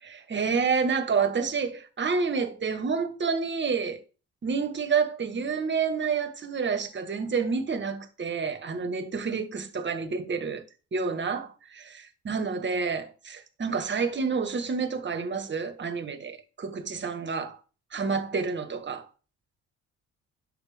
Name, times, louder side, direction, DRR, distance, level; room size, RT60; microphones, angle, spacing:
voice 1, 0.0-4.0 4.4-10.6 10.9-11.5 11.7-17.6 17.9-19.1, right 5 dB, 40° right, 1.6 m, -29 dB
11.0 x 6.8 x 3.5 m
cardioid pair, 90°, 30 cm